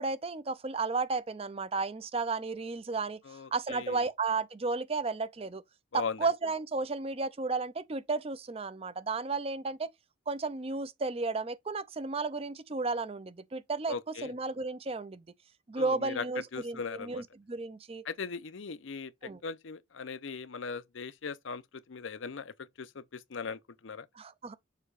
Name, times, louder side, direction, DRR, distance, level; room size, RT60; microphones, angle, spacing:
voice 1, 0.0-5.6 5.9-9.9 10.3-13.9 14.2-15.2 15.7-18.1 19.2-19.4 24.1-24.5, right 3 dB, 30° right, 0.5 m, -33 dB
voice 2, 3.3-4.0 5.9-6.2 13.9-14.3 15.8-16.2 16.5-17.2 18.1-24.1, left 5 dB, 70° left, 0.6 m, -39 dB
6.7 x 3.0 x 4.8 m
head